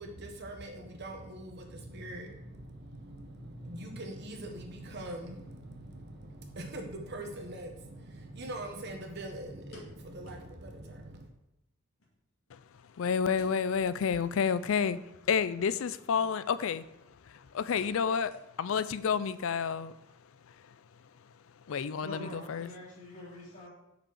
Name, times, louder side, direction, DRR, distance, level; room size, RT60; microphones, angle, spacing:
voice 1, 0.0-11.3, right 1 dB, 55° right, 3 dB, 1.3 m, -43 dB
sound 1, 9.2-10.6 10.9-11.0 11.3-11.4 12.0-12.9 13.3-13.7 13.9-14.2 14.7-14.8 15.8-16.1 16.4-16.6 16.9-17.2 17.8-18.8 19.1-19.2 19.8-20.1 20.4-20.5, left 1 dB, 90° left, 2.2 m, -57 dB
voice 2, 13.0-15.0 15.3-16.8 17.3-18.3 18.6-19.9 21.7-22.7, left 6 dB, 70° left, 15 dB, 0.4 m, -30 dB
voice 3, 22.0-23.7, left 1 dB, 40° left, -10 dB, 2.2 m, -45 dB
6.1 x 5.2 x 6.3 m, 0.92 s
head